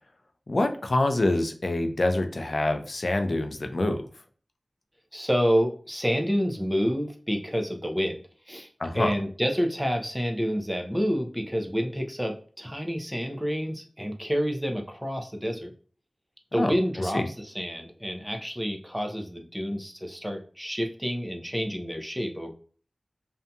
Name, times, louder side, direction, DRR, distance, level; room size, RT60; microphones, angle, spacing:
voice 1, 0.5-4.0 8.8-9.1 16.6-16.7 17.0-17.3, left 2 dB, 55° left, 6 dB, 0.4 m, -26 dB
voice 2, 5.1-8.2 8.5-8.7 8.9-15.7 16.5-22.5, equal, 5° right, 3 dB, 0.5 m, -28 dB
2.6 x 2.6 x 2.2 m, 0.41 s
wide cardioid pair, 70°, 0 cm